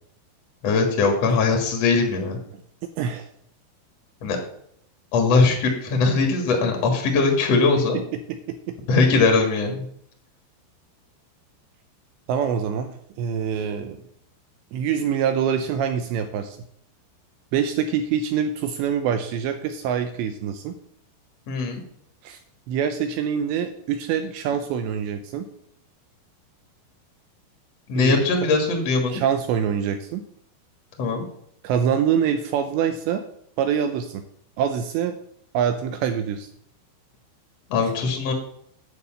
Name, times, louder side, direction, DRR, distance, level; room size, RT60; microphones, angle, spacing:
voice 1, 0.6-2.4 4.2-4.4 5.1-8.0 8.9-9.8 21.5-21.8 27.9-29.2 31.0-31.2 37.7-38.3, left 4 dB, 70° left, 2 dB, 1.5 m, -20 dB
voice 2, 3.0-3.3 8.5-8.8 12.3-14.0 14.7-16.6 17.5-20.7 22.2-22.4 22.7-25.5 28.0-28.2 29.1-30.2 31.6-33.2 33.6-34.2 34.6-35.2 35.5-36.5 37.8-37.9, right 8 dB, 85° right, 8 dB, 2.5 m, -25 dB
9.7 x 5.1 x 7.7 m, 0.68 s
omnidirectional pair, 5.9 m